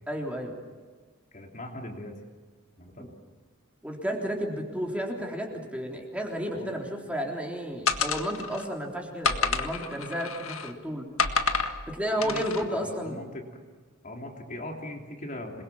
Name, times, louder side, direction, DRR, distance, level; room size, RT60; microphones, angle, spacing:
voice 1, 0.1-0.6 2.9-3.1 3.8-11.0 11.9-13.2, equal, 5° right, 0 dB, 3.6 m, -32 dB
voice 2, 1.3-2.2 2.8-3.1 6.5-6.7 12.2-13.5 14.0-15.6, left 1 dB, 35° left, 1 dB, 3.2 m, -39 dB
sound 1, 7.9-8.7 9.2-10.7 11.2-11.8 12.2-12.6, left 4 dB, 65° left, 1.8 m, -28 dB
27.5 x 22.0 x 7.2 m, 1.5 s
head